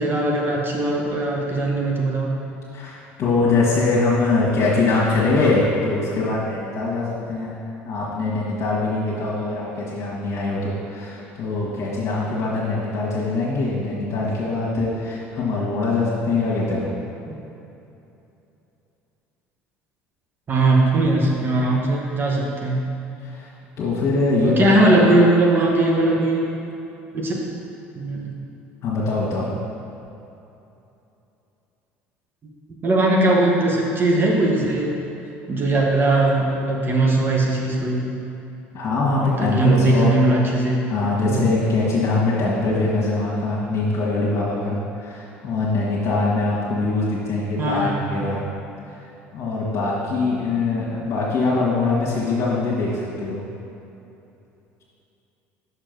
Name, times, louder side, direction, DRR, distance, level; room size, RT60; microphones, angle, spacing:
voice 1, 0.0-2.3 17.3-17.4 20.5-22.8 24.4-26.4 27.1-27.4 28.0-28.3 32.8-35.0 35.5-38.1 39.2-40.9 41.3-41.5 47.6-48.1, right 2 dB, 35° right, -1 dB, 1.2 m, -19 dB
voice 2, 2.7-16.9 23.2-23.5 23.8-24.9 28.8-29.5 38.7-40.1 40.9-48.4 48.9-49.0 49.3-53.4, left 3 dB, 55° left, -7 dB, 1.5 m, -23 dB
6.1 x 4.5 x 5.2 m, 2.9 s
supercardioid pair, 80°, 6 cm